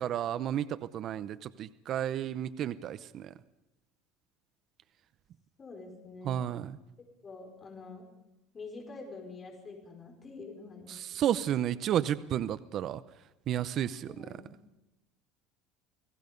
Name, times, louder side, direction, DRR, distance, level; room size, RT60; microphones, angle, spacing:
voice 1, 0.0-3.3 6.2-6.8 10.9-13.0 13.5-14.3, right 10 dB, 40° right, 13 dB, 0.8 m, -32 dB
voice 2, 5.6-6.5 7.2-8.1 8.5-11.3 14.1-14.5, left 3 dB, 25° left, 2 dB, 5.1 m, -46 dB
29.5 x 18.5 x 5.3 m, 0.98 s
cardioid pair, 150°, 0 cm